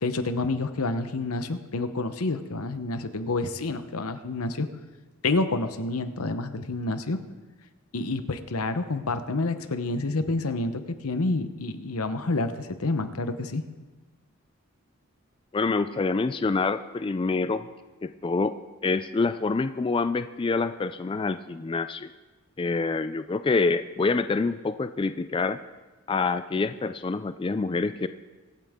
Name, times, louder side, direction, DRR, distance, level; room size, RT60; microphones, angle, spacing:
voice 1, 0.0-4.7 5.2-7.2 7.9-13.6, left 2 dB, 85° left, 10 dB, 0.9 m, -28 dB
voice 2, 15.5-17.6 18.0-18.5 18.8-22.1 22.6-25.6 26.1-28.1, left 3 dB, 25° left, 11 dB, 0.3 m, -26 dB
24.0 x 9.0 x 3.7 m, 1.2 s
head